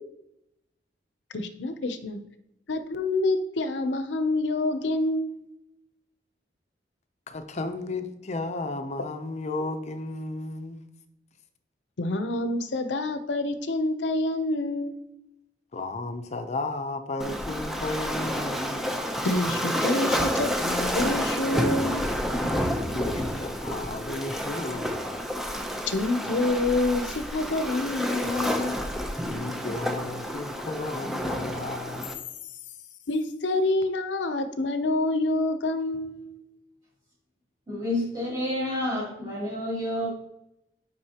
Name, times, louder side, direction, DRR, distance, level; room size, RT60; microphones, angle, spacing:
voice 1, 1.3-2.2 2.7-5.5 12.0-15.0 19.2-22.1 25.9-28.8 33.1-36.4, left 2 dB, 80° left, 0.7 m, -27 dB
voice 2, 7.3-10.9 15.7-18.8 22.4-25.0 29.3-32.1, left 2 dB, 40° left, 0.6 m, -34 dB
Waves surf, 17.2-32.1, equal, ahead, 0.6 m, -29 dB
voice 3, 37.7-40.1, left 1 dB, 20° right, 2.7 m, -29 dB
7.8 x 5.3 x 2.9 m
head